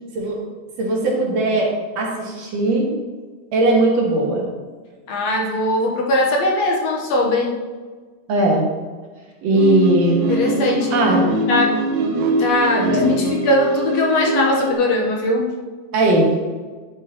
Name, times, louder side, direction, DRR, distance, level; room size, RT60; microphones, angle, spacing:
voice 1, 0.8-2.9 3.5-4.5 8.3-8.7 9.4-10.2 10.9-11.3 12.8-13.0 15.9-16.4, right 2 dB, 65° right, -2 dB, 2.5 m, -18 dB
voice 2, 5.1-7.6 10.3-11.0 11.5-12.1 12.4-15.5, left 1 dB, 65° left, 0 dB, 2.1 m, -20 dB
sound 1, 9.5-14.7, right 1 dB, 90° right, 1.1 m, -22 dB
11.0 x 7.3 x 3.0 m, 1.4 s
omnidirectional pair, 3.4 m